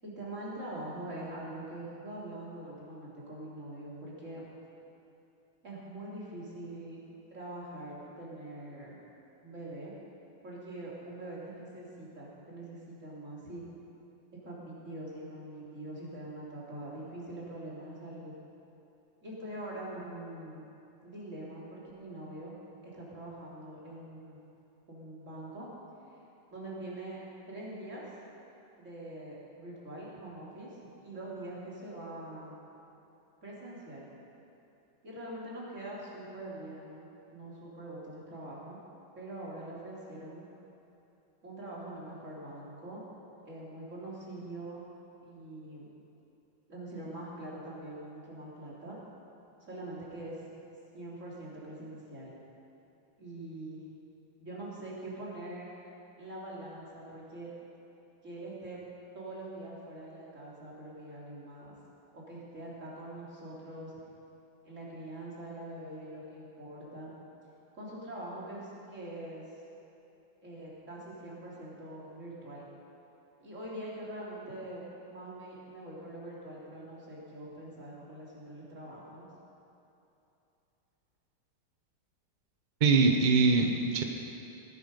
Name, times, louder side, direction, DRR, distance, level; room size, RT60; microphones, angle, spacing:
voice 1, 0.0-4.4 5.6-7.0 7.3-8.9 9.4-9.9 10.4-13.7 14.4-18.3 19.2-20.6 21.0-22.6 22.8-24.4 24.9-25.7 26.5-27.2 27.5-28.0 28.8-32.5 33.4-34.1 35.0-38.8 39.1-40.5 41.4-44.8 45.3-45.9 46.7-49.0 49.6-50.5 50.9-52.3 53.2-53.8 54.4-55.7 56.2-57.5 58.2-58.8 59.1-61.7 62.1-64.0 64.6-67.1 67.7-69.4 70.4-72.6 73.4-79.3, right 1 dB, 35° right, -6 dB, 3.3 m, -43 dB
voice 2, 82.8-84.0, right 4 dB, 55° right, 3 dB, 0.5 m, -23 dB
17.5 x 11.0 x 5.3 m, 2.8 s
omnidirectional pair, 2.2 m